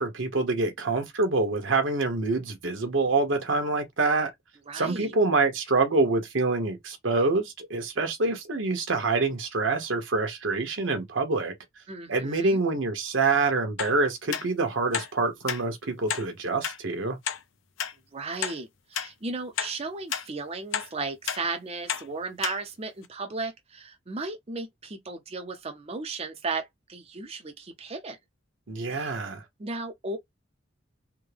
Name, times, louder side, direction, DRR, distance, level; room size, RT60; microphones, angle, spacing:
voice 1, 0.0-4.3 4.7-11.6 12.1-17.2 28.7-29.4, right 3 dB, 80° right, 1.0 m, -26 dB
voice 2, 4.7-5.1 11.9-12.6 18.1-28.2 28.9-29.1 29.6-30.2, right 3 dB, 30° right, 0.5 m, -35 dB
sound 1, 13.8-13.9 14.3-14.4 14.9-15.1 15.5-15.6 16.1-16.3 16.6-16.8 17.2-17.4 17.8-17.9 18.4-18.6 18.9-19.1 19.6-19.7 20.1-20.3 20.7-20.9 21.3-21.4 21.9-22.0 22.4-22.6 23.0-23.1, left 8 dB, 80° left, 0.6 m, -30 dB
3.5 x 2.1 x 3.3 m
head